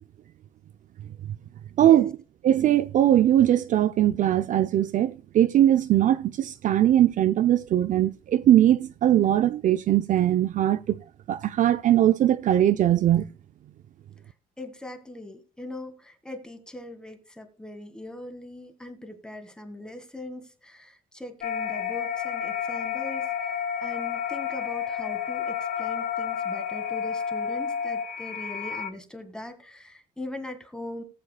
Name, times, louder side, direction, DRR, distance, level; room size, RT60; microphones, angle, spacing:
voice 1, 1.8-2.1 2.4-10.8 11.3-13.3, right 12 dB, 50° right, 0.4 m, -20 dB
voice 2, 14.6-23.3 23.8-31.0, left 1 dB, 5° left, 1.8 m, -40 dB
sound 1, 21.4-28.9, left 8 dB, 55° left, 1.1 m, -30 dB
18.5 x 7.5 x 2.2 m
cardioid pair, 110°, 17 cm